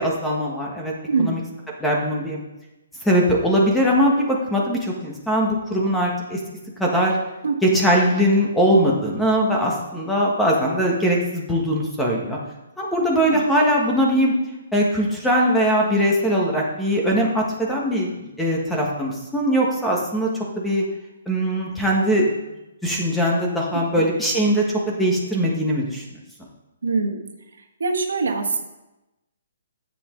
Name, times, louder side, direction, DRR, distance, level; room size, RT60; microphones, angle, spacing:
voice 1, 0.0-0.9 1.2-1.4 1.8-2.4 3.0-6.4 6.8-7.1 7.6-12.4 12.8-14.3 14.7-20.3 20.6-20.8 21.3-22.2 22.8-26.0, equal, 5° left, -2 dB, 1.3 m, -21 dB
voice 2, 1.1-1.4 7.4-7.8 13.3-13.5 23.9-24.1 26.8-27.2 27.8-28.6, right 4 dB, 90° right, 2 dB, 1.5 m, -24 dB
9.9 x 7.7 x 3.8 m, 0.99 s
hypercardioid pair, 165°, 0 cm